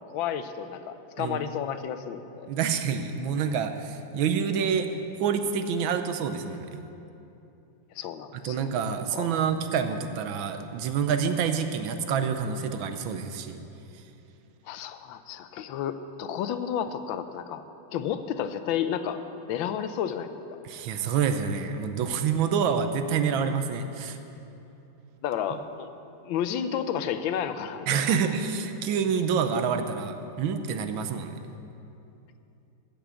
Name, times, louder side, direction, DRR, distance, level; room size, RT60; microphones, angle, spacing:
voice 1, 0.1-2.5 8.0-8.7 9.1-9.3 14.7-17.6 17.9-19.2 19.5-20.6 25.2-25.9 26.2-28.2, left 9 dB, 80° left, 10 dB, 1.4 m, -31 dB
voice 2, 2.5-6.8 8.4-13.6 20.6-24.2 27.9-31.4, right 6 dB, 85° right, 8 dB, 1.5 m, -27 dB
14.0 x 6.4 x 8.2 m, 2.8 s
omnidirectional pair, 2.1 m